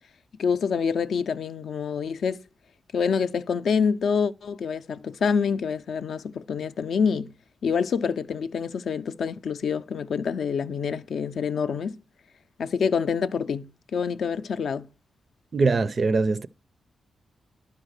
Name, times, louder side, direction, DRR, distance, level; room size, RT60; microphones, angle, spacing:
voice 1, 0.4-2.4 2.9-7.3 7.6-12.0 12.6-14.9, left 6 dB, 60° left, 0.5 m, -26 dB
voice 2, 15.5-16.5, right 4 dB, 35° right, 0.4 m, -22 dB
11.5 x 5.2 x 6.4 m
wide cardioid pair, 175°, 0 cm